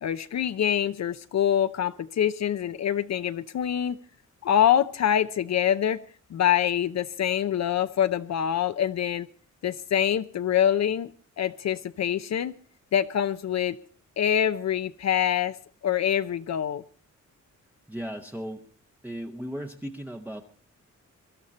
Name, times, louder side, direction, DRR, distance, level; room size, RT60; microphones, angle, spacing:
voice 1, 0.0-4.0 4.4-6.0 6.3-9.3 9.6-11.1 11.4-12.5 12.9-13.8 14.2-15.6 15.8-16.8, left 9 dB, 60° left, 11 dB, 0.7 m, -25 dB
voice 2, 17.9-18.6 19.0-20.4, equal, 5° right, 2 dB, 0.9 m, -36 dB
23.0 x 12.5 x 4.2 m, 0.43 s
wide cardioid pair, 150°, 30 cm